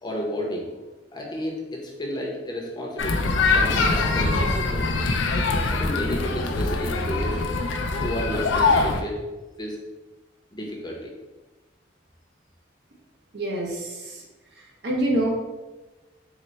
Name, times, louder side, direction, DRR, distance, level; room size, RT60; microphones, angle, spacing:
voice 1, 0.0-0.7 1.1-4.9 5.7-7.4 8.0-9.2 9.6-9.8 10.5-11.1, equal, 20° left, -2 dB, 0.7 m, -32 dB
sound 1, 3.0-9.0, left 3 dB, 75° left, 0.4 m, -23 dB
voice 2, 13.3-14.2 14.8-15.3, right 1 dB, 60° right, -1 dB, 0.7 m, -26 dB
4.0 x 2.1 x 4.3 m, 1.2 s
head